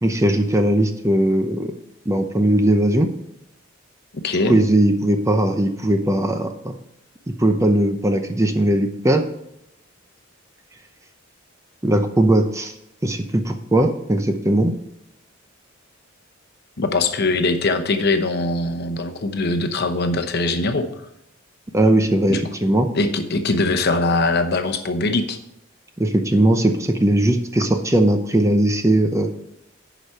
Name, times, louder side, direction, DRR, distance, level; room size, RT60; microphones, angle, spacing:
voice 1, 0.0-1.7 2.1-3.1 4.5-6.7 7.4-9.2 11.8-12.7 13.0-14.7 21.7-22.9 26.0-29.3, right 1 dB, 15° right, 6 dB, 0.7 m, -19 dB
voice 2, 4.2-4.6 16.8-20.9 22.3-22.4 22.9-25.4, left 2 dB, 50° left, 7 dB, 0.9 m, -21 dB
11.0 x 5.1 x 5.6 m, 0.79 s
head